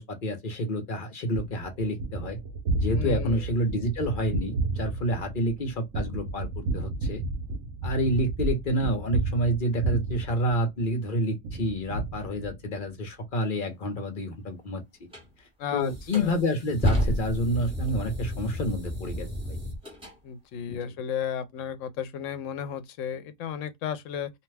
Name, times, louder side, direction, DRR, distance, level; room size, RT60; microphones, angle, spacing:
voice 1, 0.0-2.4 2.8-7.2 7.8-14.8 15.7-19.6 20.7-20.8, equal, 45° left, 0.9 m, -28 dB
Gunshot gunfire, 1.3-11.0 11.4-12.9, right 2 dB, 75° right, 1.0 m, -32 dB
voice 2, 2.9-3.4 15.6-16.3 20.2-24.3, left 8 dB, 80° left, 1.0 m, -34 dB
sound 1, 15.1-15.3 15.9-20.1, equal, 5° right, 0.9 m, -31 dB
2.7 x 2.2 x 3.2 m
omnidirectional pair, 1.3 m